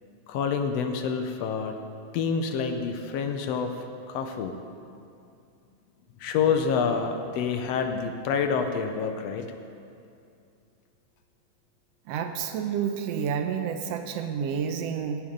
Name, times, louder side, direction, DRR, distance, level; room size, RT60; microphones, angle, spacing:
voice 1, 0.3-1.8 2.1-3.7 4.1-4.5 6.2-9.5, left 6 dB, 75° left, 6 dB, 1.6 m, -27 dB
voice 2, 12.1-15.2, right 7 dB, 75° right, 7 dB, 1.5 m, -29 dB
17.0 x 7.8 x 5.2 m, 2.5 s
omnidirectional pair, 3.5 m